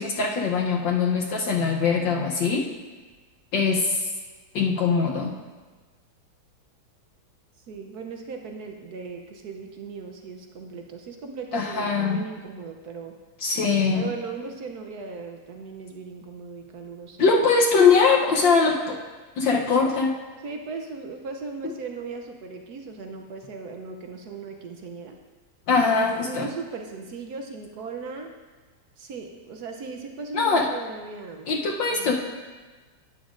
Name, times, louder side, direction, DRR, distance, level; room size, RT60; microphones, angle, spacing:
voice 1, 0.0-2.6 3.5-4.0 4.5-5.3 11.5-12.2 13.4-14.1 17.2-19.0 19.4-20.1 21.6-21.7 25.7-26.5 30.3-30.7 31.5-32.1, left 5 dB, 70° left, -1 dB, 1.5 m, -22 dB
voice 2, 7.7-13.1 13.9-17.5 20.4-25.2 25.9-28.3 29.0-31.5 31.9-32.1, right 4 dB, 65° right, 3 dB, 1.0 m, -37 dB
12.5 x 9.1 x 2.5 m, 1.3 s
omnidirectional pair, 2.2 m